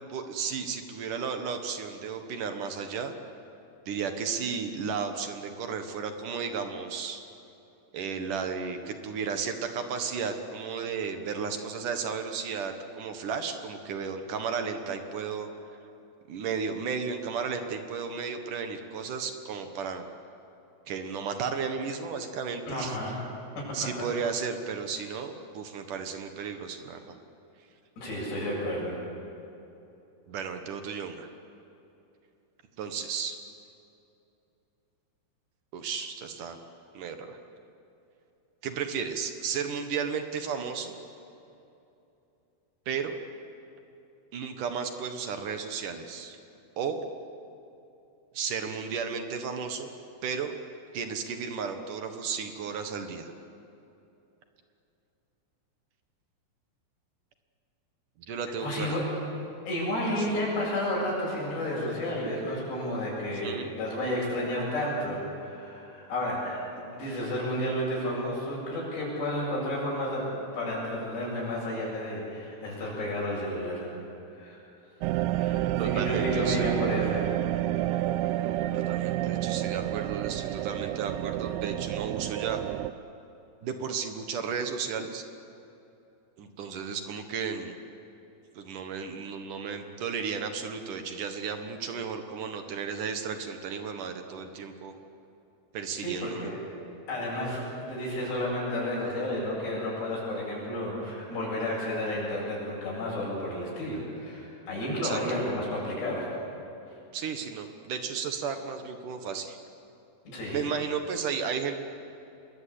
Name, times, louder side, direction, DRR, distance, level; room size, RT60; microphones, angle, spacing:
voice 1, 0.1-3.1 3.9-7.2 7.9-15.5 16.3-20.0 20.9-23.0 23.7-27.2 30.3-31.3 32.8-33.4 35.7-36.6 36.9-37.4 38.6-40.9 42.9-43.2 44.3-46.4 46.8-47.0 48.3-49.9 50.2-50.5 50.9-53.3 58.3-59.0 60.2-60.3 63.4-63.7 75.8-76.8 78.7-82.6 83.6-85.2 86.4-87.7 88.6-94.9 95.7-96.5 105.0-105.4 107.1-109.6 110.5-111.8, right 6 dB, 60° right, 6 dB, 2.5 m, -34 dB
voice 2, 22.7-23.2 23.6-23.7 28.0-29.0 58.6-59.0 59.7-73.9 74.3-74.6 75.4-77.2 77.7-78.0 96.0-96.6 97.1-106.3 110.3-110.6, left 1 dB, 65° left, -4 dB, 9.9 m, -31 dB
sound 1, 75.0-82.9, right 14 dB, 80° right, 2.4 m, -29 dB
27.0 x 21.5 x 8.5 m, 2.8 s
omnidirectional pair, 5.2 m